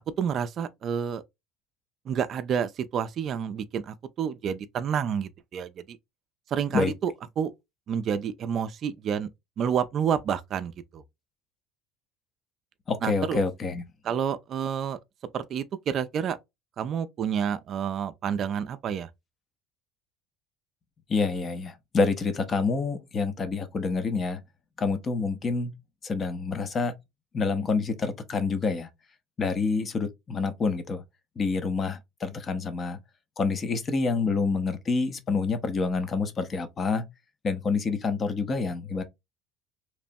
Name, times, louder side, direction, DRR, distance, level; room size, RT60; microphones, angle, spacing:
voice 1, 0.2-1.2 2.1-6.0 6.5-7.5 7.9-9.3 9.6-11.0 13.0-13.4 14.0-15.0 15.3-16.4 16.8-19.1, right 8 dB, 50° right, 0.3 m, -29 dB
voice 2, 12.9-13.8 21.1-24.4 24.8-25.7 26.0-26.9 27.3-28.9 29.4-31.0 31.4-33.0 33.4-37.0 37.4-39.0, left 4 dB, 35° left, 0.6 m, -27 dB
2.9 x 2.1 x 2.6 m
supercardioid pair, 95°, 0 cm